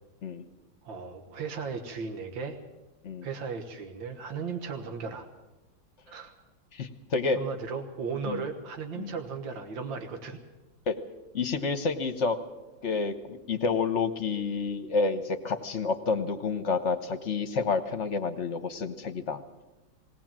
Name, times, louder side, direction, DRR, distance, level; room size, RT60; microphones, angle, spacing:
voice 1, 0.8-2.6 3.2-5.3 6.1-6.3 7.4-10.4, right 5 dB, 85° right, 6 dB, 2.1 m, -36 dB
voice 2, 6.7-7.4 8.2-8.4 9.0-9.1 10.9-11.0 11.3-12.4 12.8-19.4, left 4 dB, 45° left, 9 dB, 1.1 m, -29 dB
19.5 x 18.0 x 7.5 m, 1.1 s
omnidirectional pair, 2.0 m